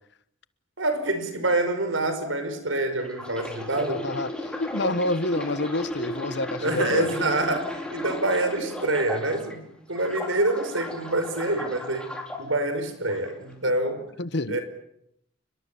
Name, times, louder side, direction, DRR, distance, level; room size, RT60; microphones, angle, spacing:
voice 1, 0.8-4.0 6.6-12.1 12.4-14.0 14.5-14.6, right 2 dB, 80° right, 9 dB, 5.6 m, -26 dB
sound 1, 3.0-9.6 10.0-12.4 13.1-13.3, left 1 dB, 5° left, 4.1 m, -35 dB
voice 2, 3.8-7.2 13.6-13.7 14.2-14.6, left 2 dB, 60° left, 15 dB, 1.2 m, -28 dB
30.0 x 22.5 x 7.1 m, 0.75 s
head